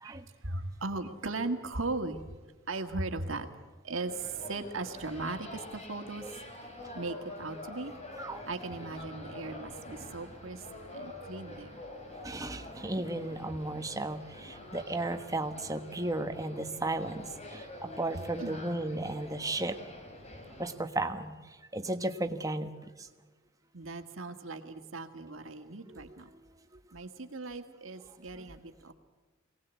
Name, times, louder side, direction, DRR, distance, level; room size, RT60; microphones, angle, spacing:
voice 1, 0.0-2.2 2.7-3.5 3.8-6.3 6.9-7.9 8.5-10.7 10.9-11.8 18.4-18.6 23.7-26.3 26.9-28.9, right 3 dB, 70° right, 7 dB, 1.8 m, -38 dB
sound 1, 4.1-20.7, left 2 dB, 30° left, 3.5 m, -46 dB
voice 2, 8.1-8.5 12.2-19.8 20.6-21.3 21.7-22.7 23.0-23.1 25.9-26.0, right 2 dB, 15° right, 7 dB, 1.3 m, -34 dB
23.5 x 18.5 x 8.3 m, 1.3 s
head